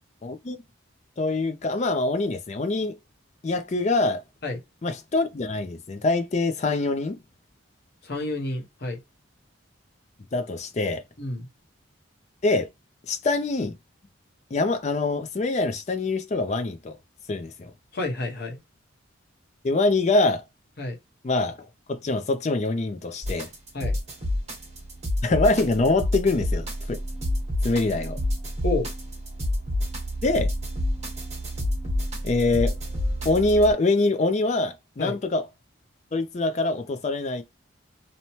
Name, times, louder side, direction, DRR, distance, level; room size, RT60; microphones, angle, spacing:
voice 1, 0.2-0.6 1.2-3.0 3.4-4.2 4.8-7.2 10.3-11.0 12.4-12.7 13.1-13.7 14.5-17.0 17.3-17.7 19.6-20.4 21.2-21.6 21.9-23.5 25.2-27.0 27.6-28.2 30.2-30.5 32.2-32.7 33.2-35.5 36.1-37.4, left 2 dB, 35° left, 0.4 m, -24 dB
voice 2, 8.0-9.0 11.2-11.5 17.9-18.6 20.8-21.0 23.7-24.0 28.6-28.9 35.0-35.2, left 2 dB, 50° left, 0.9 m, -29 dB
sound 1, 23.2-33.7, left 1 dB, 35° right, 1.1 m, -29 dB
2.8 x 2.1 x 3.0 m
head